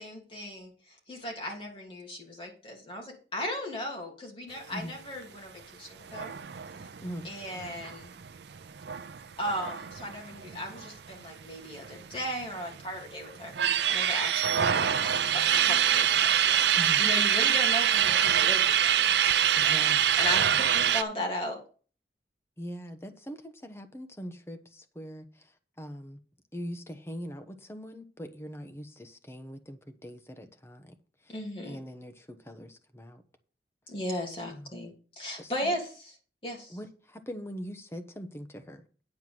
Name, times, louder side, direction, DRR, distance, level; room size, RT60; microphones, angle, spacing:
voice 1, 0.0-6.3 7.2-8.1 9.4-19.2 19.5-19.8 20.1-21.6 31.3-31.8 33.9-36.1 36.4-36.8, left 1 dB, 30° left, 2.9 m, -37 dB
sound 1, 6.1-11.2 11.5-11.6 11.8-12.8 13.2-21.0, right 9 dB, 75° right, 0.5 m, -25 dB
voice 2, 16.8-17.1 19.6-20.2 22.6-26.2 26.5-30.9 31.2-31.4 31.6-33.2 34.5-34.8 35.4-35.7 36.7-38.8, equal, 15° left, 1.0 m, -42 dB
9.7 x 4.5 x 7.7 m
head